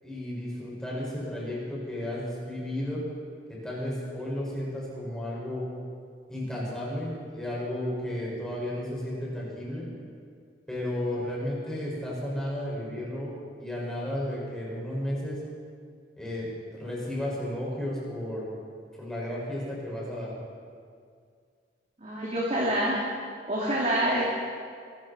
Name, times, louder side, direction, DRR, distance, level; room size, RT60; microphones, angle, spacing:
voice 1, 0.0-3.0 3.5-5.7 6.3-9.9 10.7-13.3 13.6-15.4 16.2-16.5 16.7-18.5 19.0-20.3, left 1 dB, 5° left, -6 dB, 5.9 m, -33 dB
voice 2, 22.0-23.0 23.5-24.2, right 1 dB, 40° right, -6 dB, 2.8 m, -26 dB
24.0 x 13.5 x 4.4 m, 2.1 s
head